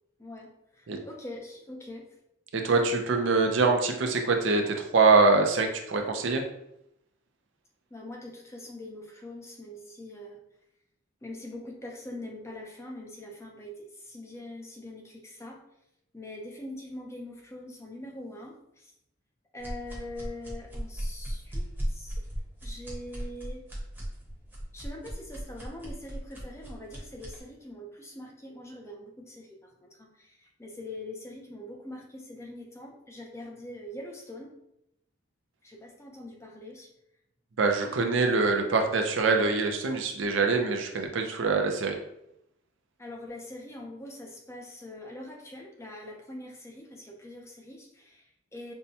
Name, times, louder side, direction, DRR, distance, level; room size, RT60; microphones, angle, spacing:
voice 1, 0.2-2.1 7.9-10.4 11.2-15.6 16.1-18.9 19.5-22.2 22.6-23.6 24.7-34.5 35.6-36.9 43.0-48.7, left 1 dB, 15° left, 0 dB, 0.5 m, -43 dB
voice 2, 2.5-6.4 37.6-42.0, right 3 dB, 65° right, 4 dB, 0.5 m, -24 dB
sound 1, 19.6-27.4, equal, 10° right, 0.9 m, -37 dB
5.3 x 2.2 x 2.7 m, 0.79 s
head